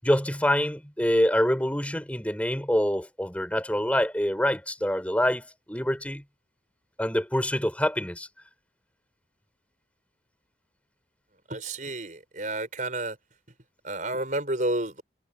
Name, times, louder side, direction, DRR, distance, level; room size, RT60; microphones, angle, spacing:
voice 1, 0.0-6.2 7.0-8.3, equal, 5° left, 6.3 m, -26 dB
voice 2, 11.5-13.2 13.8-15.0, right 2 dB, 45° right, 6.6 m, -30 dB
head